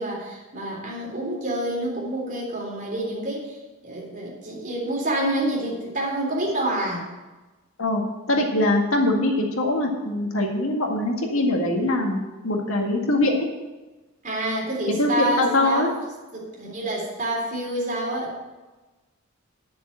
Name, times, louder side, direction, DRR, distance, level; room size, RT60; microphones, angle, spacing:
voice 1, 0.0-7.1 14.2-15.9 16.3-18.4, right 1 dB, 40° right, -3 dB, 3.7 m, -28 dB
voice 2, 7.8-13.5 15.0-15.9, left 1 dB, 75° left, 1 dB, 2.0 m, -23 dB
10.5 x 6.9 x 7.6 m, 1.2 s
head